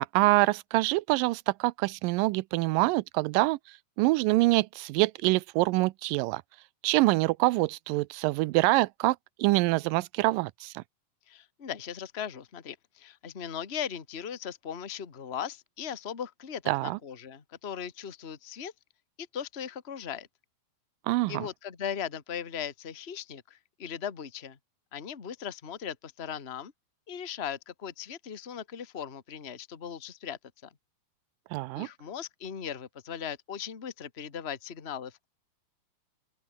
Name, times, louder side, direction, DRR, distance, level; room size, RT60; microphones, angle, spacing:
voice 1, 0.0-3.6 4.0-6.4 6.8-10.8 16.7-17.0 21.1-21.5 31.5-31.9, right 21 dB, 85° right, 2.2 m, -25 dB
voice 2, 11.3-18.7 19.2-20.3 21.3-24.6 24.9-26.7 27.1-30.7 31.7-35.3, left 8 dB, 30° left, 1.3 m, -38 dB
open air
omnidirectional pair, 4.0 m